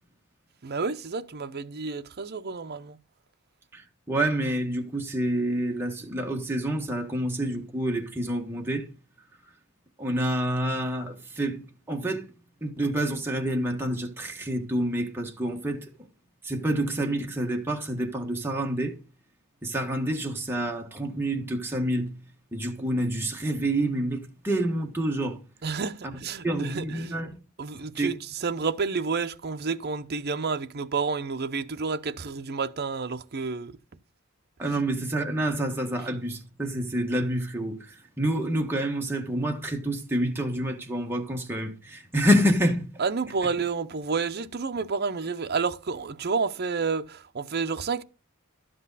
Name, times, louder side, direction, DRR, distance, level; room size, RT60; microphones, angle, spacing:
voice 1, 0.6-3.0 25.6-27.2 27.6-33.8 43.0-48.0, right 4 dB, 45° right, 0.6 m, -30 dB
voice 2, 3.7-8.9 10.0-12.3 12.6-15.9 16.4-18.9 19.6-22.2 22.5-25.4 26.0-26.1 26.4-27.4 28.0-28.1 34.6-43.0, right 1 dB, 10° right, 1.4 m, -28 dB
11.5 x 7.8 x 4.0 m
head